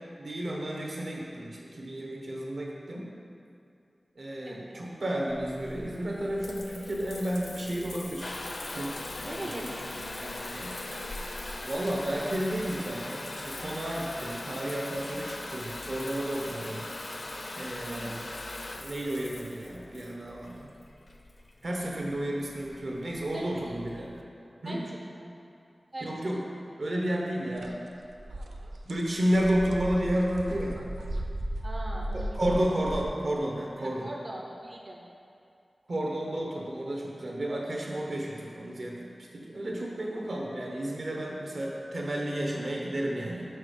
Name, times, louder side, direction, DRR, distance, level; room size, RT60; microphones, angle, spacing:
voice 1, 0.2-3.1 4.2-8.4 8.7-8.9 9.2-9.7 10.2-10.7 11.6-16.9 17.5-18.2 18.8-20.7 21.6-24.1 24.6-24.8 26.0-26.4 26.8-27.8 28.8-30.8 32.1-34.1 35.9-43.5, right 1 dB, 65° right, -2 dB, 1.1 m, -32 dB
voice 2, 4.5-4.9 9.2-10.4 17.9-18.2 23.3-23.5 24.6-25.3 25.9-26.3 31.6-32.9 33.8-35.0 40.0-40.2, right 1 dB, 40° right, -1 dB, 0.6 m, -41 dB
Water tap faucet / Bathtub (filling or washing) / Trickle dribble, 5.3-24.2, left 2 dB, 55° left, 0.5 m, -40 dB
sound 1, 27.6-27.7 28.0-33.1, right 1 dB, 85° right, 0.4 m, -36 dB
6.1 x 4.5 x 4.9 m, 2.5 s
wide cardioid pair, 85°, 0 cm